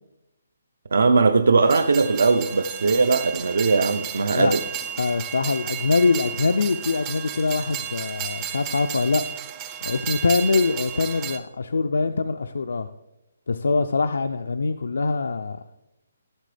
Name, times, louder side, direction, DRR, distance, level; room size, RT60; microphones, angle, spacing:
voice 1, 0.9-4.6, right 4 dB, 70° right, 8 dB, 0.5 m, -19 dB
Train, 1.6-11.4, right 9 dB, 15° right, 0.4 m, -33 dB
voice 2, 5.0-9.2 9.8-12.9 13.5-15.6, left 4 dB, 80° left, 7 dB, 0.4 m, -23 dB
13.0 x 6.8 x 3.3 m, 0.96 s
hypercardioid pair, 180°, 0 cm